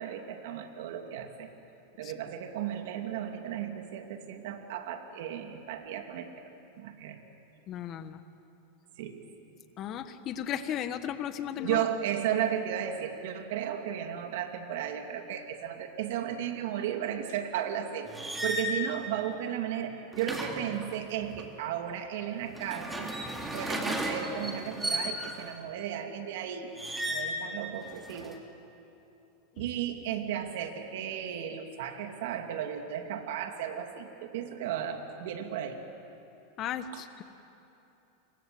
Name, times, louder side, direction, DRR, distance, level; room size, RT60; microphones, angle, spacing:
voice 1, 0.0-1.5 2.0-6.4 6.8-7.2 9.0-9.2 11.6-18.1 18.4-23.1 23.5-26.7 27.1-28.4 29.6-35.8 36.9-37.0, right 9 dB, 70° right, 5 dB, 2.8 m, -34 dB
voice 2, 7.7-8.2 9.8-11.8 29.6-29.7 36.6-37.2, left 9 dB, 35° left, 10 dB, 1.5 m, -35 dB
sound 1, 18.1-18.8 20.1-21.5 22.5-25.5 26.8-27.4 27.8-28.4, right 1 dB, 10° right, 3.0 m, -35 dB
30.0 x 23.5 x 8.0 m, 2.9 s
supercardioid pair, 135°, 0 cm